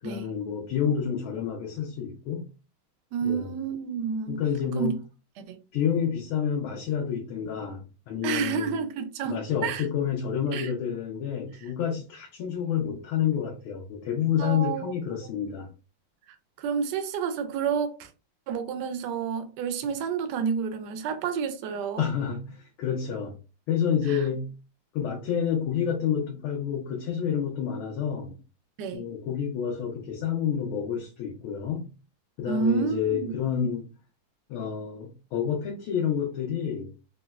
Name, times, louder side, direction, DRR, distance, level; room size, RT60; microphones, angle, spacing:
voice 1, 0.0-2.4 3.2-3.6 4.3-4.9 5.7-8.8 9.2-15.7 22.0-23.3 23.7-24.5 24.9-28.4 28.9-31.9 32.4-33.9 34.5-36.9, left 8 dB, 80° left, 1.6 m, -29 dB
voice 2, 3.1-4.4 4.8-5.0 5.4-5.6 8.2-9.8 10.5-10.7 14.4-15.3 16.6-18.1 18.5-22.1 24.1-24.2 28.8-29.0 32.5-33.3, right 6 dB, 80° right, 0.9 m, -30 dB
4.2 x 2.1 x 2.3 m
omnidirectional pair, 2.3 m